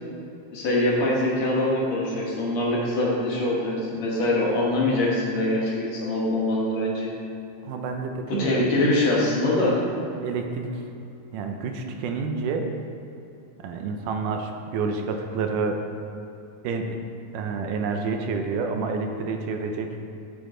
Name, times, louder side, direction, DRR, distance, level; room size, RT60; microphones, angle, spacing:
voice 1, 0.5-7.1 8.4-9.8, left 1 dB, 60° left, -4 dB, 2.6 m, -23 dB
voice 2, 7.6-8.6 10.2-10.7 11.3-12.7 13.6-15.8 16.6-17.0 17.3-20.0, right 4 dB, 80° right, 4 dB, 2.2 m, -29 dB
11.0 x 7.2 x 3.8 m, 2.7 s
omnidirectional pair, 3.7 m